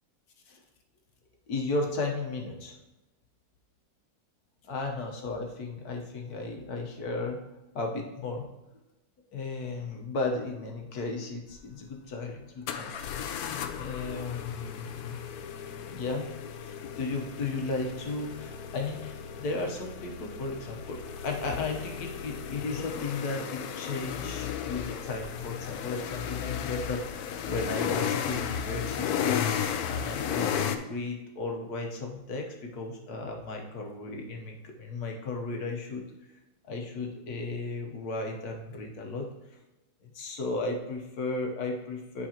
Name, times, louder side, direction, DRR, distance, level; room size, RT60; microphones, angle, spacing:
voice 1, 1.5-2.8 4.6-7.4 7.7-8.4 9.3-12.9 13.7-15.2 15.9-36.0 36.7-39.3 40.0-42.3, left 3 dB, 55° left, 2 dB, 1.3 m, -35 dB
sound 1, 11.5-11.6 12.7-30.8, left 8 dB, 80° left, 0.8 m, -34 dB
10.0 x 4.9 x 2.9 m, 0.98 s
omnidirectional pair, 2.2 m